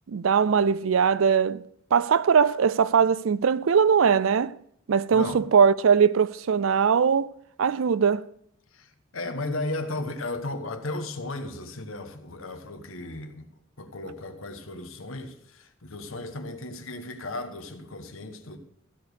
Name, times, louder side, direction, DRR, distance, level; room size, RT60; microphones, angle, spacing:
voice 1, 0.1-1.6 1.9-4.5 4.9-7.3 7.6-8.3, right 6 dB, 80° right, 0.4 m, -21 dB
voice 2, 8.7-13.5 13.8-18.6, left 2 dB, 90° left, 1.3 m, -35 dB
15.5 x 5.1 x 6.4 m
head